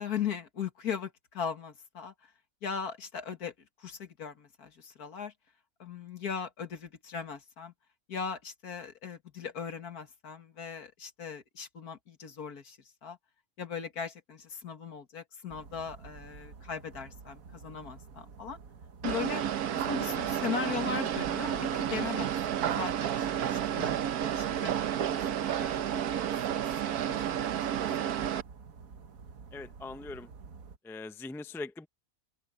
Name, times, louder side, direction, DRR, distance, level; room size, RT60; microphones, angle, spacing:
voice 1, 0.0-2.3 2.6-3.5 3.8-5.3 5.8-7.7 8.1-13.2 13.6-18.6 19.0-19.5 19.7-24.0 24.4-26.1 26.5-26.6 26.9-27.6, left 7 dB, 90° left, 2.3 m, -39 dB
sound 1, 15.5-30.8, right 5 dB, 65° right, 1.7 m, -50 dB
sound 2, 19.0-28.4, right 10 dB, 90° right, 1.4 m, -31 dB
voice 2, 29.5-30.3 30.8-31.9, left 3 dB, 5° left, 0.3 m, -41 dB
open air
omnidirectional pair, 1.6 m